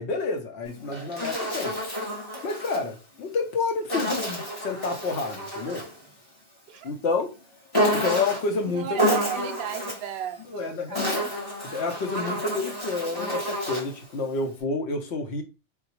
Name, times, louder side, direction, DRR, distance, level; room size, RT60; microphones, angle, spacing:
voice 1, 0.0-1.8 2.4-5.9 6.8-7.3 7.9-9.1 10.5-11.3 11.7-15.4, left 4 dB, 65° left, 0.9 m, -29 dB
Insect, 0.6-2.8 3.9-6.0 7.7-8.5 9.0-10.1 10.7-14.0, equal, 20° left, 1.0 m, -29 dB
voice 2, 8.7-11.3, right 9 dB, 65° right, 0.7 m, -35 dB
3.7 x 2.1 x 2.8 m
omnidirectional pair, 1.3 m